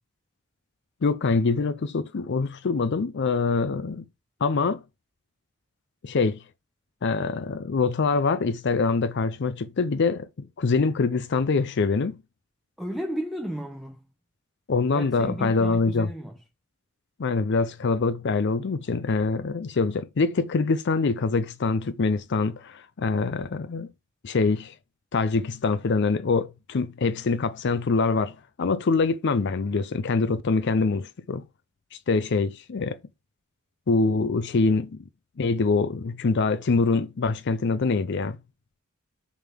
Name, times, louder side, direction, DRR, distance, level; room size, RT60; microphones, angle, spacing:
voice 1, 1.0-4.1 4.4-4.8 6.0-6.4 7.0-12.2 14.7-16.1 17.2-23.9 24.2-24.7 25.1-31.4 31.9-33.0 33.9-35.0 35.4-38.4, left 4 dB, 55° left, 0.5 m, -24 dB
voice 2, 12.8-14.0 14.9-16.4, equal, ahead, 0.7 m, -33 dB
7.0 x 3.6 x 5.9 m
head